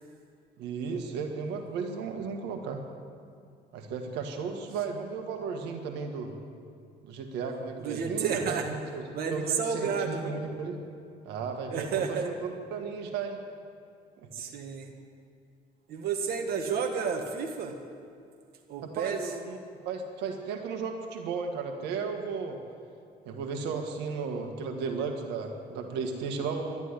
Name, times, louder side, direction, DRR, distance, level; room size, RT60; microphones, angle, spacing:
voice 1, 0.6-2.8 3.7-6.3 7.0-9.0 9.3-10.8 11.3-13.4 18.8-19.6 19.9-22.6 23.3-26.8, right 5 dB, 90° right, 4 dB, 1.7 m, -34 dB
voice 2, 7.8-8.7 9.1-10.4 11.7-12.3 14.3-14.9 15.9-17.8 18.7-19.2, right 6 dB, 65° right, 3 dB, 1.7 m, -31 dB
12.5 x 11.0 x 9.8 m, 2.4 s
cardioid pair, 110°, 17 cm